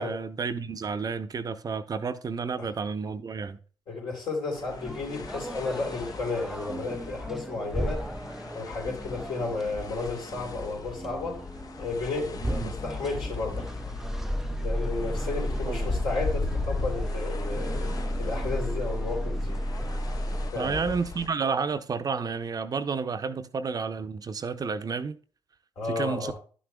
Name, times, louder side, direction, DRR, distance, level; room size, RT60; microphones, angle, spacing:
voice 1, 0.0-3.6 12.4-12.7 15.3-15.4 15.7-15.9 20.6-25.2 25.9-26.4, right 5 dB, 45° right, 0.6 m, -31 dB
voice 2, 3.9-8.0 8.5-11.4 11.8-13.7 14.5-19.6 20.5-20.8 25.8-26.4, left 3 dB, 70° left, 3.4 m, -33 dB
sound 1, 4.5-21.3, left 4 dB, 45° left, 0.7 m, -38 dB
sound 2, 4.7-20.5, equal, 5° right, 0.4 m, -34 dB
11.0 x 6.2 x 2.3 m
supercardioid pair, 50°, 9 cm